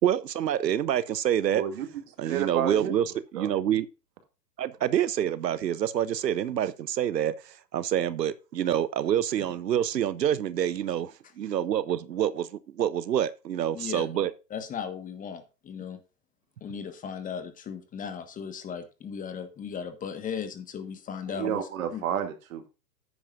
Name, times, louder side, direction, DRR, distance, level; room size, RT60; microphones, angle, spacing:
voice 1, 0.0-1.6 2.2-3.9 4.6-12.5 12.7-14.3, right 10 dB, 85° right, 0.8 m, -27 dB
voice 2, 1.5-1.9 2.2-2.9 3.3-3.5 21.3-22.7, right 9 dB, 55° right, 2.4 m, -30 dB
voice 3, 13.7-14.1 14.5-16.0 16.6-22.0, left 7 dB, 15° left, 1.4 m, -37 dB
10.5 x 9.6 x 2.5 m
hypercardioid pair, 130°, 48 cm